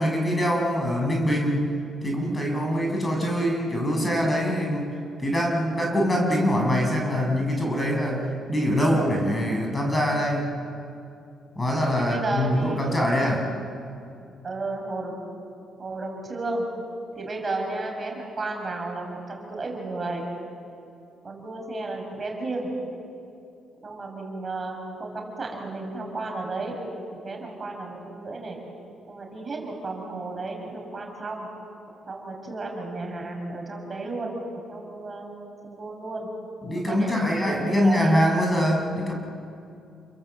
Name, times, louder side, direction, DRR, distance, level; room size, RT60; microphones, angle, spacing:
voice 1, 0.0-1.7 2.0-10.6 11.5-13.5 36.6-39.1, equal, 20° left, 0 dB, 6.7 m, -24 dB
voice 2, 12.0-12.8 14.4-15.2 15.8-16.6 17.1-20.2 21.2-22.7 23.8-26.8 27.1-28.6 29.1-31.5 31.9-35.3 35.6-36.3 36.9-38.1, right 2 dB, 35° right, 1 dB, 6.6 m, -33 dB
30.0 x 22.5 x 8.0 m, 2.6 s
cardioid pair, 90°, 0 cm